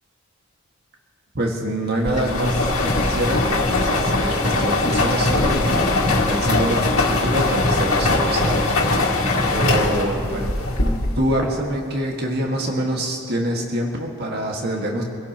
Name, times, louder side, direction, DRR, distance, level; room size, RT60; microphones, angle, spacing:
voice 1, 1.3-9.0 9.5-10.7 11.2-15.0, right 1 dB, 50° right, -1 dB, 1.8 m, -25 dB
sound 1, 2.1-11.4, left 2 dB, 80° left, 2.1 m, -20 dB
27.0 x 16.5 x 3.0 m, 2.5 s
head